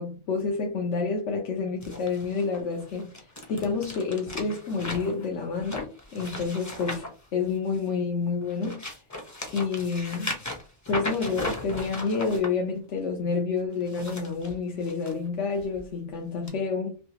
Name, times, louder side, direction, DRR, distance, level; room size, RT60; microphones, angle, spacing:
voice 1, 0.0-7.1 7.3-8.8 9.5-10.4 10.9-17.0, left 4 dB, 80° left, 1.1 m, -29 dB
sound 1, 1.8-7.9 8.4-12.5 13.7-15.1 15.6-15.8 16.5-16.6, left 1 dB, 20° left, 0.6 m, -37 dB
3.3 x 2.7 x 2.9 m
omnidirectional pair, 1.2 m